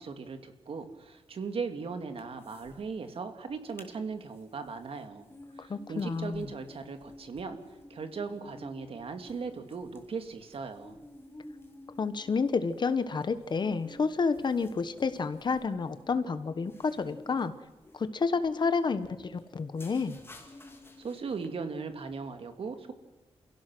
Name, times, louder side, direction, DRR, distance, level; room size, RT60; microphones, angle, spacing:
voice 1, 0.0-5.3 5.6-7.6 7.9-11.0 21.0-22.9, right 5 dB, 70° right, 7 dB, 2.1 m, -38 dB
sound 1, 2.2-2.8 3.1-3.2 3.5-3.9 4.3-21.5, left 1 dB, 25° left, 2.6 m, -51 dB
voice 2, 5.6-6.5 12.0-17.5 17.9-20.2, left 4 dB, 50° left, 11 dB, 1.2 m, -30 dB
29.0 x 16.5 x 6.2 m, 1.1 s
wide cardioid pair, 150°, 10 cm